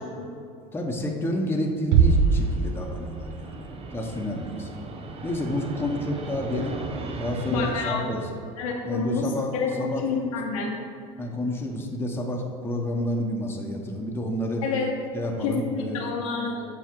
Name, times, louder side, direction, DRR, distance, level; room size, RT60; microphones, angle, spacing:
voice 1, 0.7-4.9 5.2-6.8 7.2-8.3 8.8-10.1 11.2-14.6 15.1-16.1, left 1 dB, 15° left, 0 dB, 1.1 m, -29 dB
Fixed-wing aircraft airplane, 1.9-7.7, right 3 dB, 35° right, 0.9 m, -38 dB
Bass drum, 1.9-3.4, right 5 dB, 75° right, 0.5 m, -21 dB
voice 2, 7.5-8.1 8.6-10.7 14.6-14.9 15.4-16.7, left 4 dB, 85° left, -1 dB, 1.3 m, -28 dB
7.3 x 4.8 x 4.7 m, 2.4 s
supercardioid pair, 90°, 17 cm